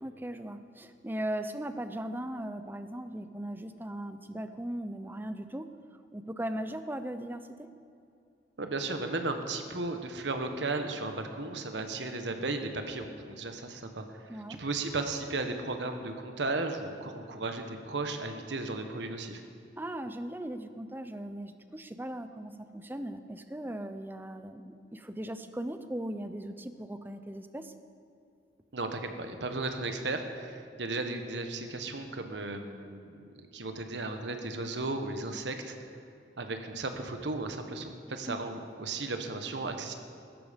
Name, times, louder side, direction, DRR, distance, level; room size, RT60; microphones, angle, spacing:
voice 1, 0.0-5.7 6.1-7.7 14.3-14.6 19.8-27.7 38.3-38.4, right 1 dB, 10° right, 10 dB, 0.6 m, -38 dB
voice 2, 8.6-19.4 28.7-33.3 33.5-35.8 36.4-39.9, right 3 dB, 80° right, 6 dB, 1.2 m, -35 dB
16.0 x 13.5 x 5.2 m, 2.6 s
head